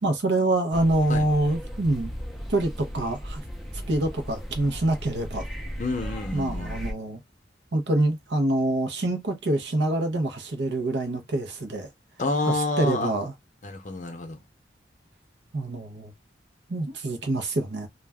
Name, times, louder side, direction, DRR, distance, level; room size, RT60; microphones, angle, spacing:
voice 1, 0.0-2.1 2.5-3.4 3.9-5.5 6.3-7.2 7.7-11.9 12.4-13.3 15.5-16.1 16.7-17.9, right 2 dB, 70° right, 0.7 m, -26 dB
sound 1, 0.7-6.9, equal, ahead, 0.4 m, -36 dB
voice 2, 5.8-6.7 12.2-13.1 13.6-14.4, left 2 dB, 45° left, 0.7 m, -28 dB
2.3 x 2.1 x 3.4 m
head